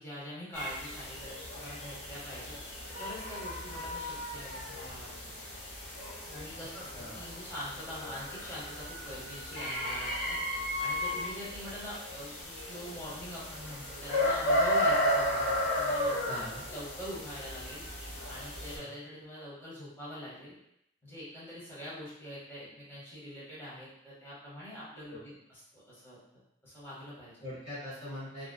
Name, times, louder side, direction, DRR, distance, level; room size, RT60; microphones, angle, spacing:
voice 1, 0.0-2.5 3.0-5.3 6.3-16.3 16.7-20.5 21.0-26.2 26.6-27.5, equal, 15° left, -9 dB, 1.0 m, -44 dB
sound 1, 0.5-18.8, left 1 dB, 80° left, 0.8 m, -34 dB
voice 2, 6.9-7.2 16.3-16.6 18.8-18.9 25.1-25.2 27.4-28.5, left 1 dB, 40° left, -8 dB, 0.6 m, -42 dB
2.6 x 2.3 x 2.2 m, 0.77 s
head